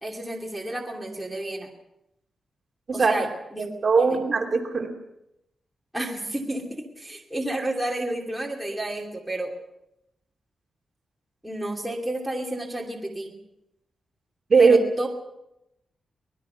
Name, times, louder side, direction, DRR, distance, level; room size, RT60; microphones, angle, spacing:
voice 1, 0.0-1.7 2.9-3.7 4.0-4.2 5.9-9.6 11.4-13.3 14.6-15.1, right 1 dB, 5° right, -2 dB, 2.8 m, -31 dB
voice 2, 3.6-4.9 14.5-14.8, right 4 dB, 35° right, 1 dB, 3.0 m, -19 dB
24.5 x 19.5 x 5.9 m, 0.87 s
wide cardioid pair, 160°, 0 cm